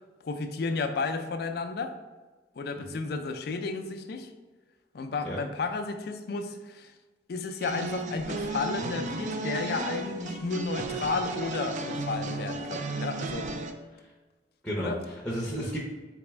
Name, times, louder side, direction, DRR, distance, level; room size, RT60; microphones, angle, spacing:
voice 1, 0.2-2.0 2.6-4.3 4.9-6.9 7.3-13.6 14.8-15.0, left 4 dB, 55° left, 7 dB, 0.4 m, -32 dB
voice 2, 2.8-3.1 5.2-5.4 13.9-14.1 14.6-15.8, equal, 5° left, -5 dB, 0.6 m, -33 dB
sound 1, 7.6-13.7, right 2 dB, 40° right, 0.3 m, -34 dB
4.1 x 3.4 x 3.1 m, 1.3 s
head